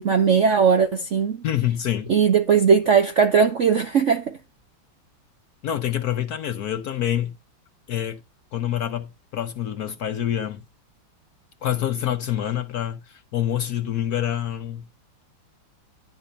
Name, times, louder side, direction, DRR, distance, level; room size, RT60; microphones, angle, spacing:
voice 1, 0.0-1.4 2.1-4.4, right 6 dB, 60° right, 0.8 m, -19 dB
voice 2, 1.4-2.1 5.6-7.3 7.9-8.2 8.5-10.6 11.6-14.9, left 11 dB, 60° left, 1.1 m, -26 dB
11.5 x 4.2 x 5.2 m
omnidirectional pair, 2.2 m